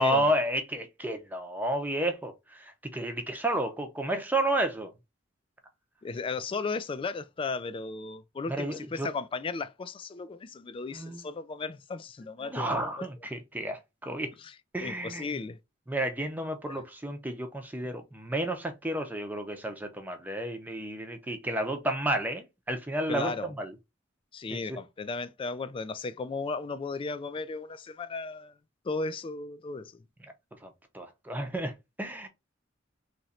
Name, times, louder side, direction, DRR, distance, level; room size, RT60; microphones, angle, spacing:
voice 1, 0.0-4.9 8.5-9.1 10.9-11.2 12.4-14.3 14.7-15.3 15.9-23.7 24.5-24.6 30.6-31.7 32.0-32.3, right 1 dB, 10° right, 0.7 m, -31 dB
voice 2, 6.0-13.1 14.4-14.5 14.8-15.6 16.7-16.8 23.1-23.5 24.3-28.5 28.8-30.0, left 4 dB, 25° left, 0.3 m, -35 dB
3.0 x 2.5 x 4.2 m
head